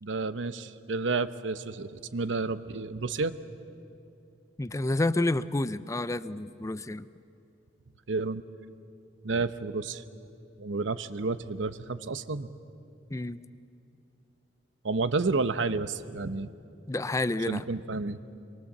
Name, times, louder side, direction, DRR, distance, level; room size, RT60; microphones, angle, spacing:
voice 1, 0.0-3.4 8.1-8.4 9.2-10.0 10.6-12.5 14.8-16.5 17.5-18.2, right 3 dB, 80° right, 13 dB, 0.8 m, -30 dB
voice 2, 4.6-7.1 13.1-13.4 16.9-17.6, left 2 dB, 15° left, 15 dB, 0.5 m, -29 dB
25.5 x 23.0 x 7.3 m, 2.6 s
head